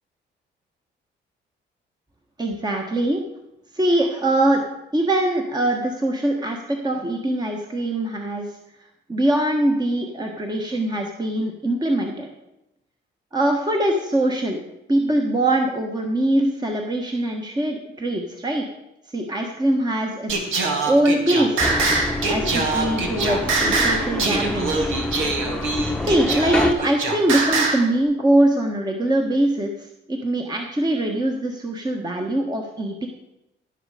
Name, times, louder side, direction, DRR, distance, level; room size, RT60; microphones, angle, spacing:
voice 1, 2.4-3.2 3.7-4.7 4.9-8.5 9.1-12.3 13.3-14.6 14.9-18.7 19.1-20.5 20.8-21.7 22.2-24.9 26.0-33.1, right 1 dB, 20° right, 2 dB, 1.4 m, -22 dB
Singing, 20.3-27.9, right 3 dB, 85° right, 1.9 m, -23 dB
sound 1, 21.6-26.7, left 1 dB, 5° left, 1.0 m, -27 dB
16.0 x 6.6 x 5.0 m, 0.89 s
cardioid pair, 90°, 20 cm